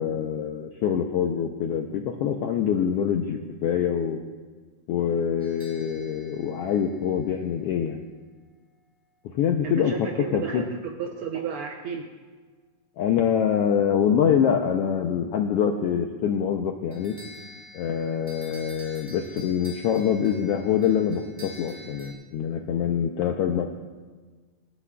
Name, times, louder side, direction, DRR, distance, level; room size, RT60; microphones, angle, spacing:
voice 1, 0.0-4.2 4.9-8.0 9.2-10.1 10.3-10.6 13.0-17.1 17.7-23.7, left 8 dB, 80° left, 3 dB, 1.3 m, -25 dB
sound 1, 5.4-7.7 16.9-22.1, left 1 dB, 20° right, 1.1 m, -47 dB
voice 2, 9.6-12.1, right 7 dB, 80° right, 2 dB, 1.2 m, -33 dB
26.5 x 9.8 x 2.3 m, 1.4 s
omnidirectional pair, 3.4 m